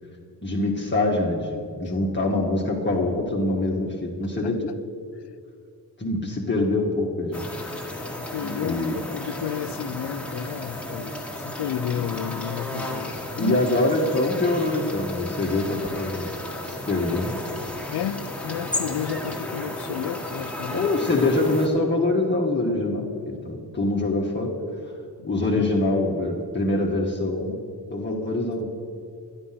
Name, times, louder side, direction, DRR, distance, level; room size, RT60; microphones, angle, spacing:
voice 1, 0.4-4.7 6.0-7.4 8.6-9.0 13.4-16.3 16.6-17.3 20.7-24.5 25.2-27.6 27.9-28.7, left 2 dB, 25° left, -2 dB, 1.4 m, -24 dB
sound 1, 7.3-21.7, left 1 dB, 5° left, 1.7 m, -33 dB
voice 2, 8.2-13.6 17.9-20.9 25.2-25.3 25.5-25.7, left 9 dB, 80° left, 13 dB, 0.6 m, -32 dB
12.0 x 11.0 x 5.8 m, 2.3 s
wide cardioid pair, 110°, 40 cm